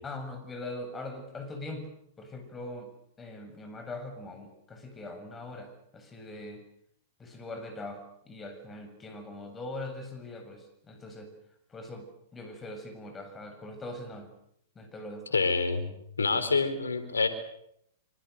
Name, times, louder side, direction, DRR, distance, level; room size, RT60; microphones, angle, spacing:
voice 1, 0.0-1.9 2.2-2.9 3.2-6.6 7.2-11.3 11.7-12.0 12.3-14.3 14.8-15.2, left 2 dB, 20° left, 7 dB, 7.4 m, -41 dB
voice 2, 15.3-15.9 16.2-17.3, left 4 dB, 90° left, 11 dB, 4.1 m, -26 dB
26.0 x 26.0 x 6.8 m, 0.73 s
hypercardioid pair, 110°, 0 cm